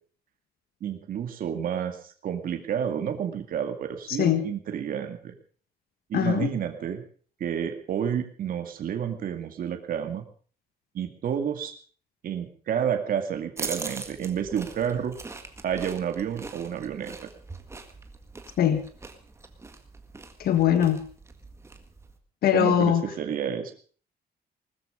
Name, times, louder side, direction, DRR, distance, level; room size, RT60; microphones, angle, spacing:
voice 1, 0.8-5.3 6.1-7.0 7.4-10.2 10.9-11.7 12.2-15.1 15.6-17.3 20.7-20.8 22.5-23.7, right 8 dB, 60° right, 5 dB, 2.2 m, -30 dB
voice 2, 4.1-4.4 6.1-6.5 18.6-18.8 20.4-21.0 22.4-23.0, left 10 dB, 70° left, 9 dB, 1.6 m, -22 dB
sound 1, 13.6-22.2, right 3 dB, 15° right, 1.8 m, -41 dB
20.0 x 13.5 x 5.1 m, 0.43 s
wide cardioid pair, 180°, 16 cm